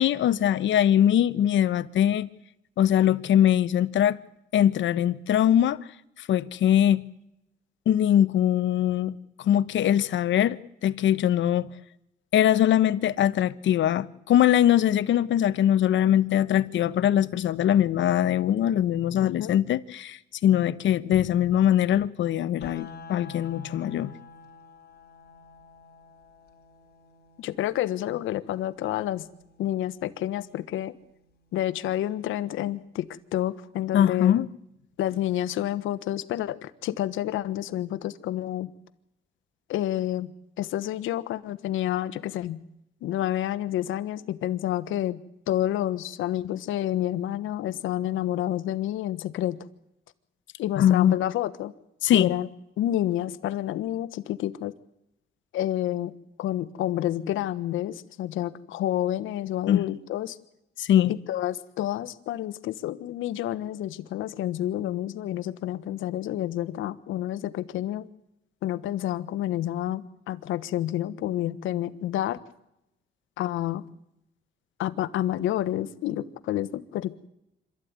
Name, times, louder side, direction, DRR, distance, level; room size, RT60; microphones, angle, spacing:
voice 1, 0.0-2.3 2.8-4.2 4.5-5.8 6.2-7.1 7.9-9.1 9.4-10.6 10.8-11.7 12.3-24.1 33.9-34.5 50.8-51.1 52.0-52.3 59.7-59.9 60.8-61.1, left 11 dB, 70° left, 1.0 m, -22 dB
voice 2, 19.2-19.6 27.4-29.3 29.6-30.9 31.5-34.3 35.0-38.7 39.7-40.3 40.6-42.6 43.0-45.2 45.5-49.6 50.6-51.7 52.1-52.5 52.8-54.7 55.5-56.1 56.4-60.4 61.1-68.1 68.6-72.4 73.4-73.8 74.8-77.3, left 13 dB, 85° left, 1.2 m, -29 dB
sound 1, 22.6-32.6, left 3 dB, 55° left, 3.9 m, -50 dB
26.5 x 13.5 x 9.6 m
cardioid pair, 90°, 20 cm